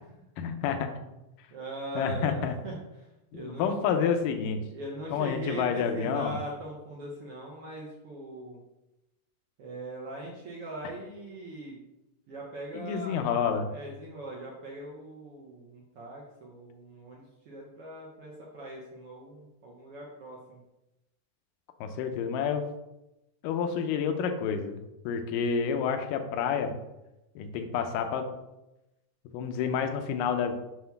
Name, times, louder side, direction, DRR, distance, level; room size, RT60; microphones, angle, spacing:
voice 1, 0.4-0.9 2.0-2.5 3.3-4.6 5.1-6.4 12.7-13.7 21.8-22.7 23.4-26.7 27.4-28.3 29.3-30.5, left 7 dB, 80° left, 6 dB, 2.2 m, -29 dB
voice 2, 1.5-3.1 3.3-3.7 4.7-8.6 9.6-11.8 12.3-13.2 13.7-20.6, right 1 dB, 75° right, -3 dB, 1.3 m, -41 dB
7.6 x 3.0 x 5.7 m, 0.95 s
omnidirectional pair, 4.1 m